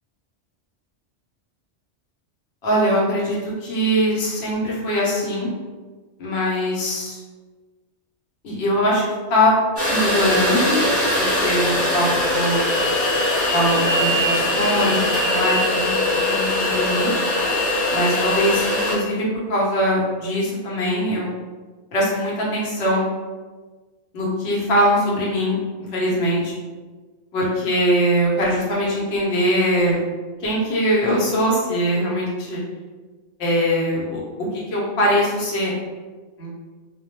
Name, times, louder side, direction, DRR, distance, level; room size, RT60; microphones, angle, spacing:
voice 1, 2.6-5.5 6.2-7.2 8.4-9.0 9.3-9.5 9.9-10.8 11.1-12.6 13.5-17.1 17.9-21.3 21.9-23.0 24.1-26.5 27.3-30.0 30.4-32.6 33.4-35.7 36.4-36.5, equal, 70° left, -4 dB, 0.9 m, -22 dB
sound 1, 9.8-19.0, left 1 dB, 15° left, 0.9 m, -21 dB
2.2 x 2.1 x 2.8 m, 1.3 s
omnidirectional pair, 1.2 m